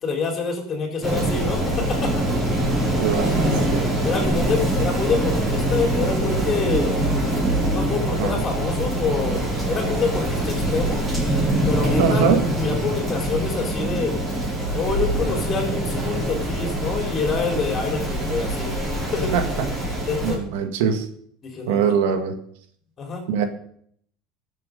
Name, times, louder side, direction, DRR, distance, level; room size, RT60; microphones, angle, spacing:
voice 1, 0.0-2.1 4.0-7.0 7.7-11.0 11.7-12.3 12.6-14.1 14.7-18.7 19.1-19.3 20.1-20.5 21.4-21.9 23.0-23.2, left 5 dB, 25° left, 2 dB, 3.9 m, -26 dB
Rain, 1.0-20.3, right 1 dB, 15° right, 5.9 m, -24 dB
voice 2, 3.0-3.8 8.2-8.4 12.0-12.4 19.3-19.7 20.2-21.1 21.7-22.4 23.3-23.4, right 7 dB, 75° right, 7 dB, 1.9 m, -22 dB
19.0 x 7.6 x 5.4 m, 0.64 s
cardioid pair, 160°, 0 cm